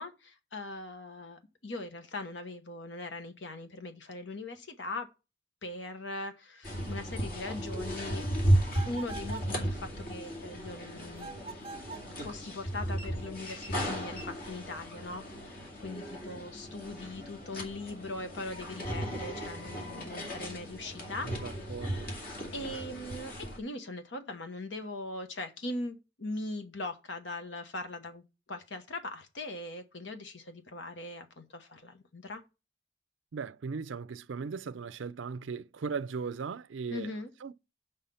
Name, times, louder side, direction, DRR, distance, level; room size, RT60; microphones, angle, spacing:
voice 1, 0.0-5.1 5.6-8.2 8.8-11.3 12.1-21.3 22.5-32.4 36.9-37.3, left 2 dB, 70° left, 1.1 m, -40 dB
sound 1, 6.6-23.6, right 1 dB, 50° left, 2.2 m, -35 dB
sound 2, 8.7-9.6 11.2-12.1, right 4 dB, 30° right, 0.6 m, -44 dB
voice 2, 21.2-22.2 33.3-37.1 37.4-37.5, right 5 dB, 80° right, 0.5 m, -38 dB
5.7 x 5.6 x 6.9 m
head